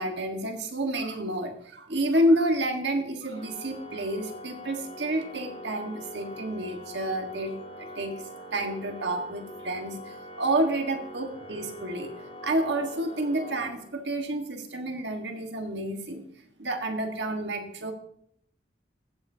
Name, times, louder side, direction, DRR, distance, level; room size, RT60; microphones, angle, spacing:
voice 1, 0.0-8.1 8.5-12.1 12.4-16.2 16.6-17.9, right 1 dB, 80° right, 4 dB, 1.4 m, -29 dB
Organ, 3.3-14.2, equal, 35° left, 3.3 m, -43 dB
15.5 x 7.7 x 2.7 m, 0.67 s
head